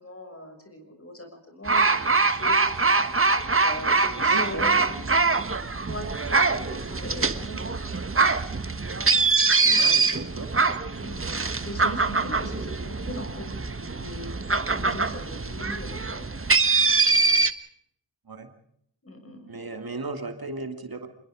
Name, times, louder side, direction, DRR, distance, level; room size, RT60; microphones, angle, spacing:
voice 1, 0.0-7.8 10.9-11.2 11.6-16.9 19.0-19.6, left 1 dB, 30° left, 5 dB, 6.6 m, -40 dB
sound 1, 1.6-17.5, right 4 dB, 30° right, 1.3 m, -23 dB
voice 2, 4.3-4.6 9.6-10.5 18.3-18.5 19.5-21.1, right 3 dB, 50° right, 6 dB, 2.6 m, -35 dB
27.0 x 21.5 x 5.0 m, 0.71 s
wide cardioid pair, 85°, 44 cm